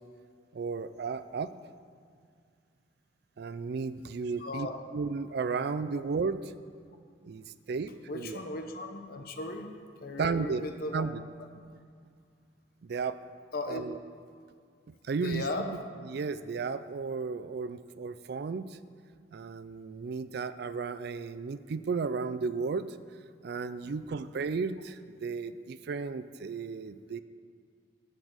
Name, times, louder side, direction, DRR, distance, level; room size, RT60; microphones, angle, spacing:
voice 1, 0.5-1.5 3.4-6.5 7.2-8.4 10.2-10.7 10.9-11.2 12.8-13.2 13.7-14.0 14.9-15.8 16.1-18.8 19.3-22.9 23.4-27.2, right 4 dB, 60° right, 13 dB, 0.4 m, -34 dB
voice 2, 4.4-4.8 5.9-6.0 8.1-9.7 10.0-11.1 13.5-13.9 15.1-15.7 23.8-23.9, left 2 dB, 55° left, 5 dB, 0.9 m, -37 dB
10.5 x 5.1 x 7.9 m, 2.2 s
head